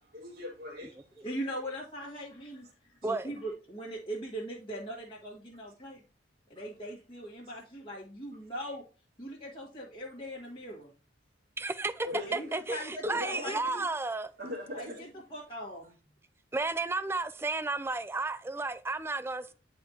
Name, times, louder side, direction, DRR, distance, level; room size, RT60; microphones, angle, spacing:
voice 1, 0.0-1.3 10.3-10.4 12.0-12.4 13.0-13.6 14.4-15.1, left 2 dB, 50° right, 1.8 m, -40 dB
voice 2, 1.2-6.0 6.5-8.8 9.2-10.9 12.3-13.8 14.7-16.2, equal, 25° left, 1.6 m, -40 dB
voice 3, 3.0-3.3 11.6-12.1 12.3-14.3 16.5-19.5, right 3 dB, 10° right, 0.3 m, -33 dB
9.9 x 4.3 x 2.8 m
head